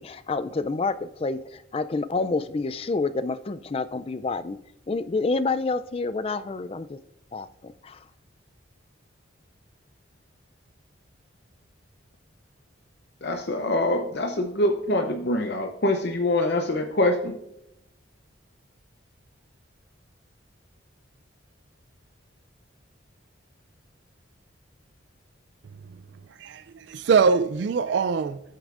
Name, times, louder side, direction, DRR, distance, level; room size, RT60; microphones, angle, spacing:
voice 1, 0.0-4.6 4.9-7.0 7.3-8.0, left 3 dB, 30° left, 0.3 m, -28 dB
voice 2, 13.2-17.4, left 1 dB, 55° left, 0.7 m, -24 dB
voice 3, 25.6-28.4, right 5 dB, 60° right, 0.3 m, -24 dB
12.5 x 8.6 x 2.5 m
head